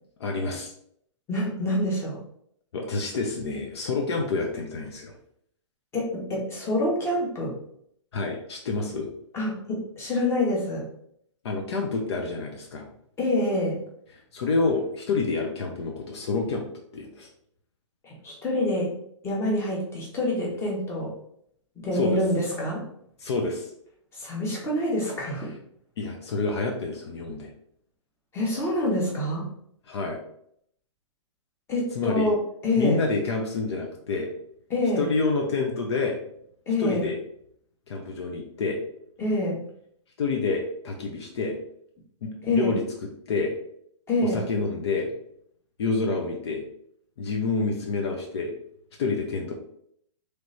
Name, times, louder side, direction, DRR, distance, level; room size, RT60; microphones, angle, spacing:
voice 1, 0.2-0.7 2.7-5.1 8.1-9.1 11.4-12.8 14.3-16.6 16.9-17.3 21.9-22.2 23.2-23.7 26.0-27.5 29.9-30.2 31.9-32.3 32.8-34.3 35.0-36.2 36.8-37.2 37.9-38.8 40.2-41.6 42.2-42.8 43.3-43.5 44.2-45.1 45.8-46.6 47.2-48.5 49.0-49.5, left 3 dB, 60° left, 1 dB, 0.8 m, -28 dB
voice 2, 1.3-2.2 5.9-7.6 9.3-10.9 13.2-13.8 18.0-19.0 19.2-21.1 21.8-22.9 24.1-25.5 28.3-29.5 31.7-33.0 34.7-35.1 36.7-37.1 39.2-39.6 42.4-42.7 44.1-44.4, left 1 dB, 15° left, -3 dB, 1.3 m, -26 dB
3.3 x 3.0 x 4.0 m, 0.69 s
hypercardioid pair, 135°, 16 cm